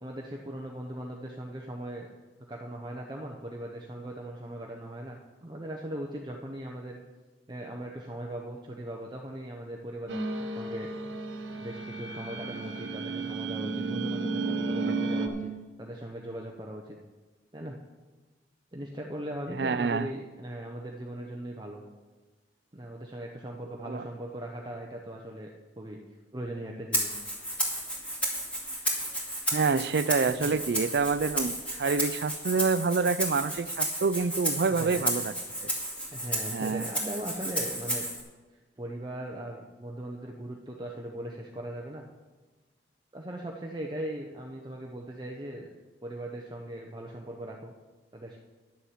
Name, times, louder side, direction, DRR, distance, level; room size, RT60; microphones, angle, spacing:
voice 1, 0.0-2.1 2.5-7.0 7.5-10.9 11.6-15.5 15.8-17.0 17.5-17.8 18.7-21.8 22.7-25.5 25.8-26.0 26.3-27.2 30.4-30.6 34.8-35.1 36.1-38.1 38.8-42.1 43.1-45.7 46.0-47.7 48.1-48.4, right 1 dB, 25° right, 0 dB, 0.8 m, -39 dB
sound 1, 10.1-15.3, right 3 dB, 90° right, 1.2 m, -33 dB
voice 2, 19.6-20.1 23.8-24.0 29.5-35.3 35.6-35.7 36.5-36.9, right 4 dB, 60° right, 15 dB, 0.4 m, -27 dB
Rattle (instrument), 26.9-38.2, right 1 dB, 5° left, 2.2 m, -32 dB
10.5 x 7.1 x 7.3 m, 1.3 s
head